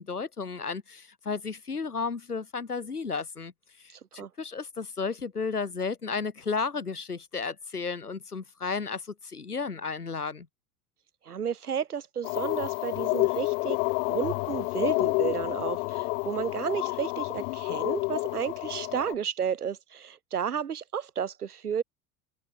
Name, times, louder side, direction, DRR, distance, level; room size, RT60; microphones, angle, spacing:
voice 1, 0.0-3.5 3.8-10.5, left 5 dB, 90° left, 3.9 m, -33 dB
voice 2, 3.9-4.3 11.2-13.8 14.1-21.8, right 8 dB, 85° right, 2.5 m, -32 dB
sound 1, 12.2-19.1, left 28 dB, 65° left, 3.6 m, -29 dB
figure-of-eight pair, 65°, 44 cm